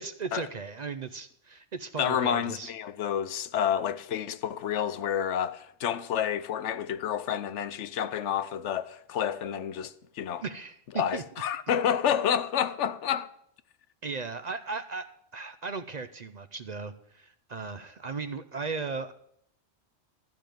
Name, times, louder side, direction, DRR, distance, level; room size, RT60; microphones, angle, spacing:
voice 1, 0.0-2.7 10.4-11.2 14.0-15.1 15.3-19.1, right 4 dB, 45° right, 0.6 m, -36 dB
voice 2, 2.0-10.4 10.9-13.3, left 9 dB, 85° left, 1.0 m, -29 dB
13.5 x 5.1 x 9.0 m
omnidirectional pair, 1.2 m